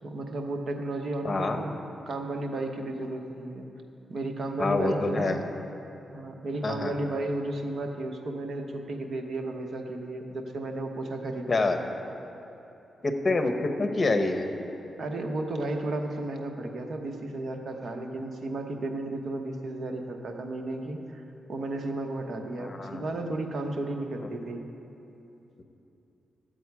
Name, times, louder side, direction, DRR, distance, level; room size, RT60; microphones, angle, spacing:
voice 1, 0.0-1.8 2.1-3.6 4.1-5.4 6.1-11.7 15.0-21.2 21.5-24.6, right 2 dB, 60° right, 3 dB, 1.1 m, -33 dB
voice 2, 1.2-1.6 4.6-5.4 6.6-6.9 11.5-11.8 13.0-14.5 22.6-23.1, left 3 dB, 35° left, 6 dB, 1.0 m, -26 dB
13.0 x 8.0 x 4.8 m, 2.9 s
cardioid pair, 85°, 0 cm